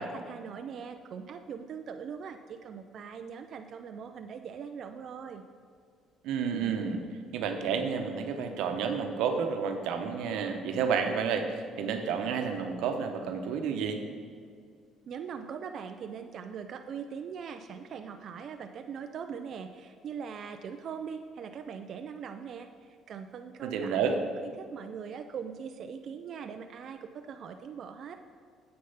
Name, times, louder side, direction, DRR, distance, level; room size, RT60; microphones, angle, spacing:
voice 1, 0.0-5.4 15.1-28.2, right 6 dB, 45° right, 6 dB, 0.3 m, -41 dB
voice 2, 6.2-7.0 7.3-14.0 23.6-24.2, right 6 dB, 90° right, 5 dB, 0.9 m, -30 dB
7.8 x 6.6 x 5.6 m, 2.2 s
cardioid pair, 165°, 0 cm